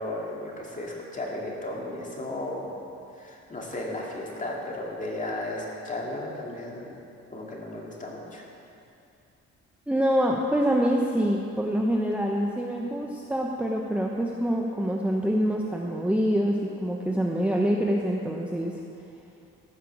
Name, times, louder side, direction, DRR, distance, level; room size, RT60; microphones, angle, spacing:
voice 1, 0.0-2.8 3.1-7.0 7.3-8.4, left 1 dB, 25° left, -2 dB, 2.5 m, -34 dB
voice 2, 9.9-18.7, equal, 5° right, -1 dB, 0.9 m, -25 dB
14.5 x 5.8 x 7.2 m, 2.6 s
cardioid pair, 90°, 30 cm